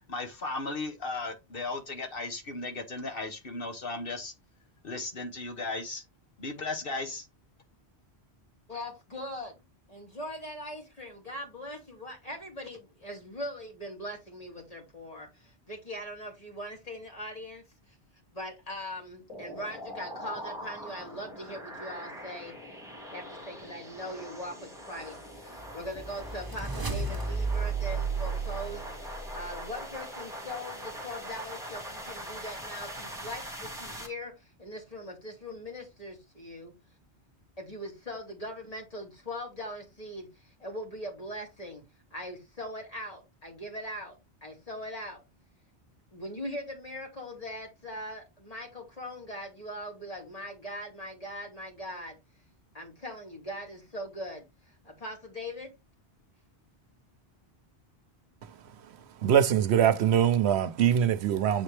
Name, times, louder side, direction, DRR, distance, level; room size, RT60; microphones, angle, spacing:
voice 1, 0.1-4.3 4.8-6.0 6.4-7.3, left 3 dB, 60° left, 1.3 m, -36 dB
voice 2, 8.7-9.6 9.9-17.6 18.3-22.5 23.1-36.7 37.6-41.8 42.1-44.2 44.4-45.2 46.1-52.2 52.7-55.7, equal, 35° left, 2.7 m, -41 dB
sound 1, 19.3-34.1, equal, 5° right, 2.1 m, -42 dB
sound 2, 25.3-29.6, right 4 dB, 20° right, 0.9 m, -33 dB
voice 3, 59.2-61.6, right 9 dB, 80° right, 0.9 m, -23 dB
8.0 x 4.2 x 3.3 m
omnidirectional pair, 1.1 m